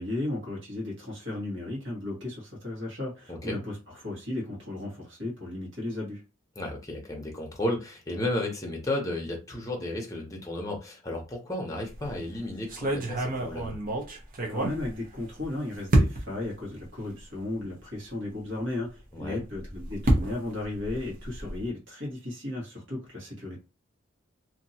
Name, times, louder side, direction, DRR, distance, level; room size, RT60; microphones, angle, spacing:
voice 1, 0.0-6.2 14.5-23.6, left 2 dB, 60° right, 1.6 m, -35 dB
voice 2, 6.6-13.8 19.1-19.4, left 1 dB, 15° left, 0.7 m, -33 dB
sound 1, 11.8-12.2 12.7-15.4 15.9-16.5 17.2-17.3 17.6-17.7 19.4-21.7, right 1 dB, 45° right, 0.8 m, -28 dB
2.9 x 2.7 x 2.7 m
head